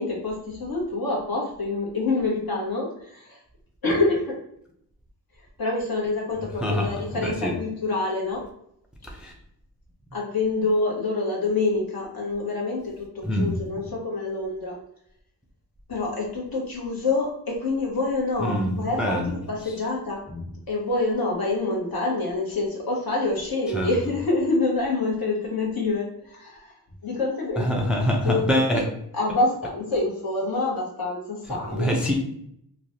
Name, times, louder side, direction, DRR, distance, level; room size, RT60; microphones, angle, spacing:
voice 1, 0.0-3.4 3.8-4.4 5.6-8.4 10.1-14.8 15.9-20.2 20.7-26.8 27.0-27.8 28.2-28.9 29.1-32.0, left 3 dB, 60° left, -3 dB, 1.2 m, -26 dB
voice 2, 6.6-7.5 9.0-9.3 13.2-13.5 18.4-19.3 20.3-20.5 23.7-23.9 27.6-28.8 31.7-32.1, equal, ahead, 1 dB, 0.5 m, -25 dB
3.1 x 2.2 x 2.6 m, 0.71 s
cardioid pair, 70°, 40 cm